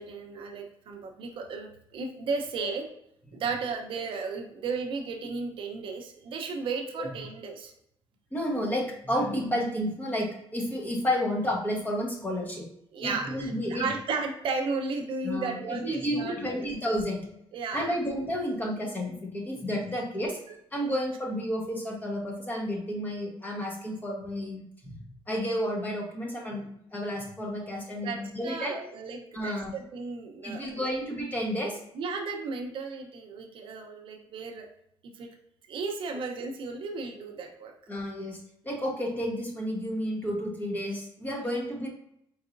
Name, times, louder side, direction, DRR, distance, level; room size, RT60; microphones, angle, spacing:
voice 1, 0.0-2.9 3.3-7.7 12.9-16.6 17.5-17.9 20.5-20.6 28.0-30.9 31.9-34.7 35.1-35.3 35.7-37.7, right 4 dB, 65° right, 3 dB, 0.7 m, -34 dB
voice 2, 8.3-12.7 13.0-13.9 15.2-17.3 17.7-20.4 20.7-28.9 29.3-29.7 30.4-31.8 37.9-41.9, equal, 20° left, -1 dB, 1.0 m, -31 dB
4.5 x 4.1 x 2.5 m, 0.75 s
cardioid pair, 145°, 10 cm